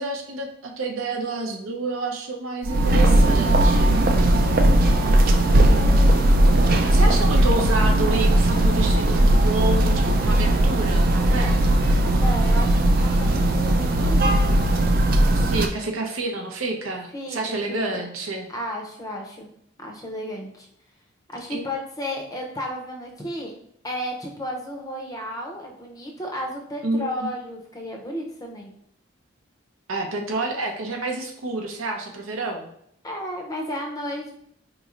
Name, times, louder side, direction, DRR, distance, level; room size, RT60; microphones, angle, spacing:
voice 1, 0.0-4.0 6.9-11.9 15.3-18.5 21.5-21.6 26.8-27.3 29.9-32.7, right 2 dB, 90° right, 2 dB, 0.7 m, -29 dB
sound 1, 2.6-15.7, right 1 dB, 45° right, 0.3 m, -18 dB
voice 2, 5.0-6.1 12.1-14.5 17.1-18.1 18.5-19.5 19.8-20.7 21.3-23.5 23.8-28.7 33.0-34.3, equal, 15° left, 1 dB, 0.5 m, -33 dB
4.0 x 3.0 x 2.4 m, 0.71 s
head